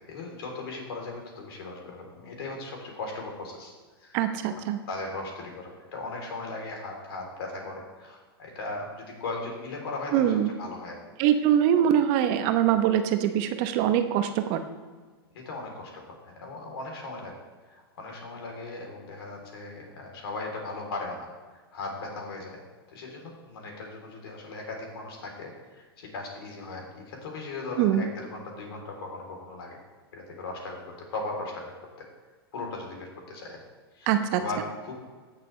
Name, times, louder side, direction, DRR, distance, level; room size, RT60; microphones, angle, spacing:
voice 1, 0.1-3.7 4.0-4.2 4.5-10.3 10.6-11.0 11.7-11.8 15.3-17.3 17.7-21.3 21.5-22.6 22.9-29.8 30.1-31.7 32.5-33.6 33.9-34.9, left 3 dB, 70° left, 1 dB, 3.3 m, -38 dB
voice 2, 4.1-4.8 10.1-10.5 11.2-14.6 27.8-28.1 34.1-34.4, right 10 dB, 45° right, 8 dB, 0.9 m, -23 dB
17.0 x 6.7 x 3.2 m, 1.4 s
hypercardioid pair, 115°, 13 cm